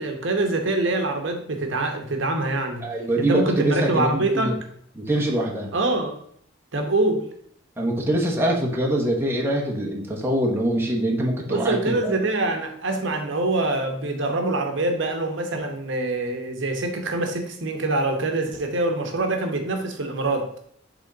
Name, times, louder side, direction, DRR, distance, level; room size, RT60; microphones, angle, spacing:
voice 1, 0.0-2.9 3.2-4.6 5.7-6.2 6.7-7.3 11.5-20.5, right 2 dB, 70° right, 4 dB, 1.0 m, -25 dB
voice 2, 2.8-4.5 4.9-5.7 7.8-12.1, right 1 dB, 15° right, -2 dB, 1.2 m, -24 dB
7.9 x 3.7 x 4.0 m, 0.66 s
head